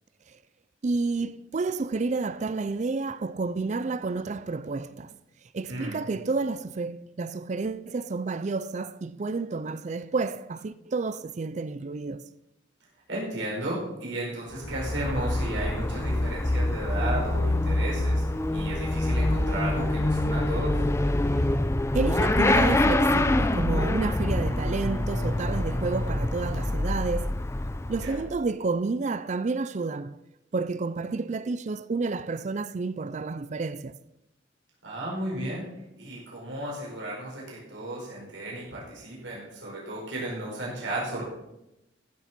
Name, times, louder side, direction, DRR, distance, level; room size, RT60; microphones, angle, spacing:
voice 1, 0.8-5.2 5.5-12.2 21.4-21.5 21.9-27.4 27.9-30.2 30.5-34.0, right 3 dB, 40° right, 0.4 m, -30 dB
voice 2, 13.1-20.8 28.0-28.1 34.8-41.3, right 1 dB, 85° right, 4.7 m, -34 dB
Motorcycle / Accelerating revving vroom, 14.5-28.4, left 1 dB, 15° left, 0.5 m, -25 dB
15.0 x 7.1 x 5.9 m
head